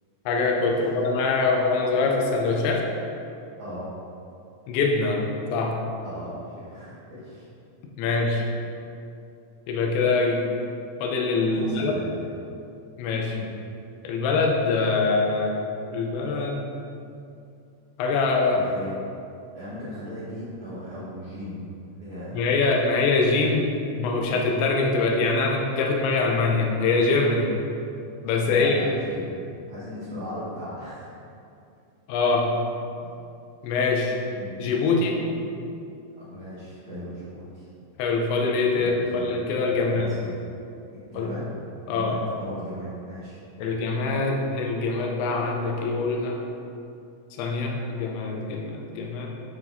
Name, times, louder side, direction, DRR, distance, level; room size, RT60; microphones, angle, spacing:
voice 1, 0.3-2.8 4.7-5.2 5.5-5.8 8.0-8.5 9.7-10.4 11.0-11.9 13.0-13.4 14.0-15.6 15.9-16.6 18.0-18.6 22.3-27.5 28.2-28.8 32.1-32.5 33.6-34.2 34.6-35.2 38.0-40.1 41.2-41.3 41.9-42.1 43.6-46.4 47.4-49.3, left 3 dB, 80° left, 0 dB, 2.7 m, -24 dB
voice 2, 3.6-3.9 6.0-7.5 11.5-12.2 13.2-13.5 18.5-18.9 19.5-21.6 21.9-22.5 28.5-29.3 29.7-31.1 34.3-34.5 36.3-37.7 38.8-39.3 39.8-40.4 40.9-41.5 41.8-43.4, equal, 75° right, -13 dB, 1.7 m, -38 dB
9.6 x 5.9 x 2.7 m, 2.6 s
omnidirectional pair, 5.9 m